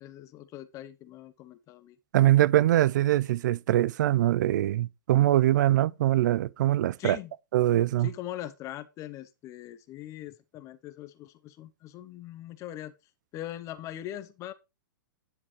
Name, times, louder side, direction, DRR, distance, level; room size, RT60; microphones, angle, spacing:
voice 1, 0.0-2.0 7.0-7.3 8.0-12.9 13.3-14.5, left 13 dB, 30° left, 0.7 m, -41 dB
voice 2, 2.1-7.2 7.5-8.1, right 14 dB, 60° right, 0.5 m, -23 dB
10.0 x 6.9 x 3.1 m
hypercardioid pair, 130°, 11 cm